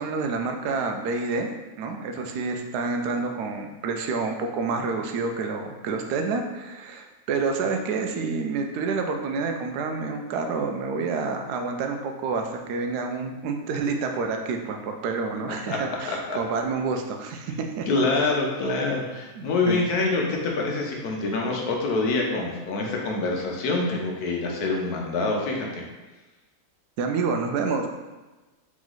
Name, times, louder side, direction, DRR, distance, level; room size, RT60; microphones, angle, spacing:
voice 1, 0.0-1.5 1.8-17.9 19.4-19.8 27.0-27.9, right 4 dB, 90° right, 4 dB, 1.1 m, -28 dB
voice 2, 16.0-16.4 17.9-25.8, left 3 dB, 75° left, 0 dB, 1.3 m, -26 dB
3.6 x 3.1 x 3.8 m, 1.2 s
omnidirectional pair, 1.7 m